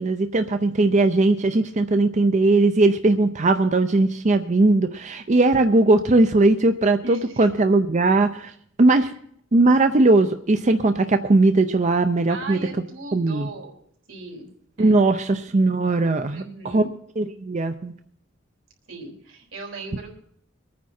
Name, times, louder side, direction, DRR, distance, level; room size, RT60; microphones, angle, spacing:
voice 1, 0.0-8.5 8.8-9.1 9.5-12.6 13.1-13.5 14.8-16.4 16.7-16.8 17.2-17.9, right 2 dB, 35° right, 9 dB, 0.6 m, -19 dB
voice 2, 7.0-7.5 8.9-9.2 12.3-13.7 14.1-14.5 14.8-15.1 16.3-17.0 18.9-20.1, right 3 dB, 85° right, 1 dB, 3.9 m, -38 dB
23.5 x 9.5 x 4.3 m, 0.65 s
head